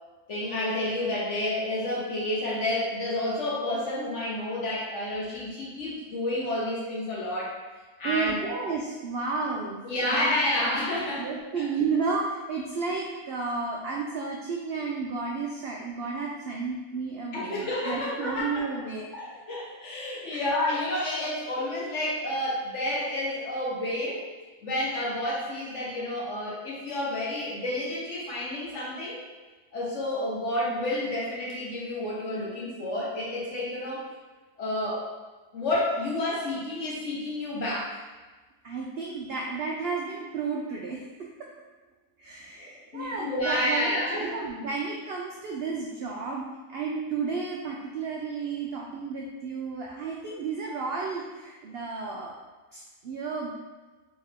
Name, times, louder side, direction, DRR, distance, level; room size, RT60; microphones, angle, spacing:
voice 1, 0.3-7.5 8.0-8.5 9.8-11.3 11.6-11.7 17.3-18.8 19.1-24.2 24.6-29.2 29.7-34.0 34.6-35.1 35.5-38.0 42.6-44.4, left 1 dB, 55° left, -5 dB, 1.3 m, -30 dB
voice 2, 8.0-10.3 11.2-19.1 20.3-20.4 38.6-41.5 42.2-52.3 52.7-53.5, right 4 dB, 75° right, -2 dB, 0.5 m, -32 dB
3.5 x 3.3 x 3.5 m, 1.3 s
omnidirectional pair, 1.6 m